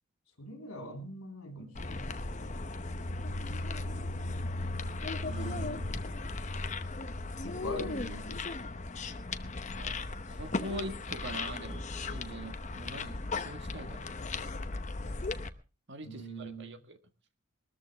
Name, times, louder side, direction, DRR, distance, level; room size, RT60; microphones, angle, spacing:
voice 1, 0.4-2.1 7.4-8.4 9.4-9.5 16.0-16.8, equal, 80° left, 3.8 m, -42 dB
sound 1, 1.8-15.5, left 3 dB, 35° left, 0.8 m, -36 dB
voice 2, 5.2-5.8 7.5-7.6 9.7-10.0 10.2-14.2 15.9-17.0, right 1 dB, 55° right, 1.6 m, -43 dB
21.0 x 13.5 x 3.5 m
head